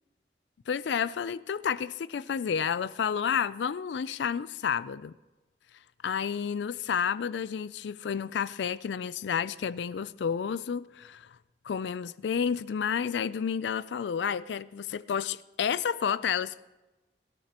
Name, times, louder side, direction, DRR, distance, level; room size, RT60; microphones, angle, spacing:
voice 1, 0.7-5.1 6.0-11.4 11.6-16.6, left 7 dB, 85° left, 0.4 m, -30 dB
19.0 x 13.5 x 2.9 m
head